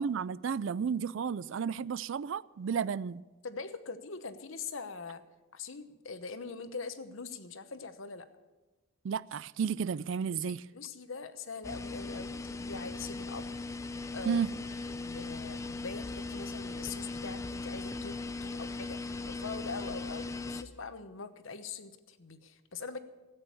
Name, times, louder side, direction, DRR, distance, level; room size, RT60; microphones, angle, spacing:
voice 1, 0.0-3.2 9.0-10.6 14.3-14.5, right 6 dB, 65° right, 0.3 m, -32 dB
voice 2, 3.4-5.2 5.5-8.3 10.3-13.5 14.1-14.5 14.8-18.1 18.4-23.0, left 4 dB, 70° left, 1.0 m, -43 dB
sound 1, 11.6-20.6, left 3 dB, 15° left, 0.5 m, -39 dB
14.0 x 9.0 x 8.4 m
head